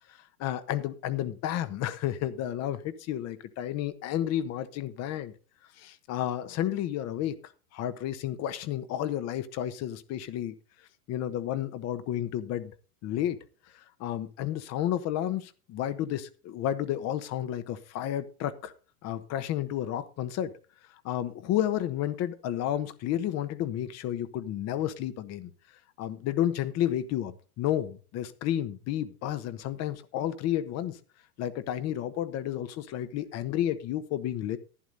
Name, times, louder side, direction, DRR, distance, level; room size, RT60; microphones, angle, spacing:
voice 1, 0.4-5.3 5.8-7.4 7.7-10.5 11.1-12.7 13.0-13.4 13.7-18.7 19.0-20.5 21.0-25.5 26.0-31.0 31.4-34.6, left 11 dB, 35° left, 1.2 m, -31 dB
11.5 x 10.5 x 4.0 m
hypercardioid pair, 105°, 45 cm